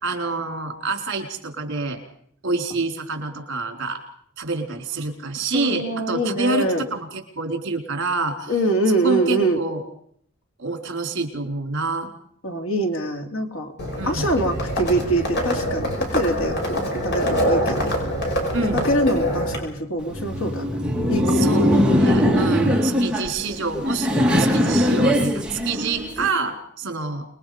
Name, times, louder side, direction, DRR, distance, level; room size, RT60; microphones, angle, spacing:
voice 1, 0.0-2.0 2.4-4.0 4.4-8.5 9.0-9.8 10.6-12.1 14.0-14.3 18.5-18.8 21.3-24.1 24.4-27.3, right 3 dB, 55° right, 3 dB, 4.3 m, -27 dB
voice 2, 5.5-6.8 8.5-9.6 12.4-13.7 14.0-17.9 18.6-20.8 21.1-21.5 22.0-22.6, right 1 dB, 70° left, 3 dB, 3.2 m, -24 dB
Livestock farm animals working animals, 13.8-19.6, equal, 50° left, 6.2 m, -25 dB
Laughter, 20.0-26.3, equal, 5° right, 2.3 m, -20 dB
28.0 x 21.5 x 5.2 m, 0.65 s
head